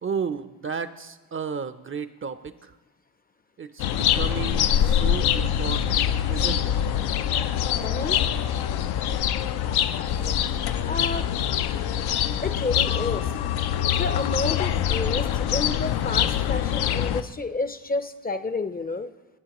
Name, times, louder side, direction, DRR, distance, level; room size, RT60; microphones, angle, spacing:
voice 1, 0.0-2.7 3.6-6.7, right 6 dB, 35° right, 12 dB, 0.5 m, -33 dB
sound 1, 3.8-17.2, left 10 dB, 80° left, 0.6 m, -24 dB
voice 2, 7.8-8.2 10.2-10.3 10.8-11.3 12.4-13.3 13.9-19.1, left 3 dB, 25° left, 11 dB, 0.5 m, -30 dB
18.5 x 7.5 x 3.0 m, 1.2 s
cardioid pair, 65°, 38 cm